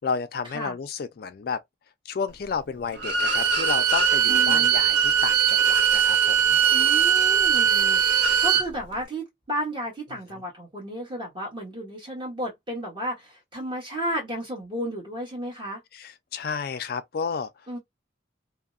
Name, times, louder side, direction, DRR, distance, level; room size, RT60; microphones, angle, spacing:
voice 1, 0.0-1.6 2.1-6.6 10.1-10.4 15.9-17.5, left 5 dB, 50° left, 0.3 m, -32 dB
Bowed string instrument, 3.0-8.7, right 7 dB, 60° right, 0.6 m, -20 dB
voice 2, 4.3-4.7 6.7-15.8 17.7-17.8, equal, 25° right, 1.2 m, -33 dB
2.6 x 2.1 x 2.3 m
head